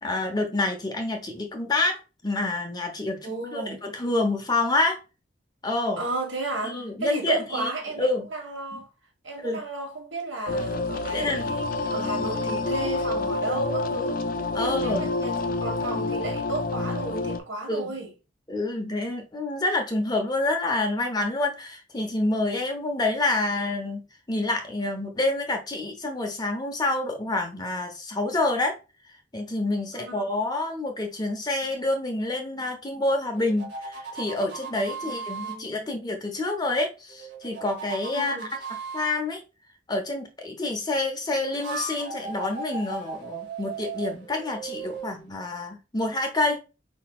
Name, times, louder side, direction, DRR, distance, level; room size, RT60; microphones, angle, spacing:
voice 1, 0.0-5.0 5.6-6.0 6.6-7.7 8.0-8.3 8.7-8.8 9.4-9.6 11.1-11.5 14.5-15.1 17.7-17.9 18.5-28.7 29.3-38.4 38.9-39.4 39.9-46.6, left 2 dB, 20° left, 0.9 m, -28 dB
voice 2, 3.2-3.9 6.0-8.9 9.2-14.3 14.6-18.1 29.9-30.3 35.0-35.9 38.1-38.5, right 2 dB, 80° right, 1.6 m, -33 dB
sound 1, 10.5-17.4, left 3 dB, 45° left, 0.6 m, -28 dB
sound 2, 33.3-35.6 37.1-39.2 41.3-45.3, right 4 dB, 55° right, 2.5 m, -37 dB
4.7 x 4.1 x 2.4 m
head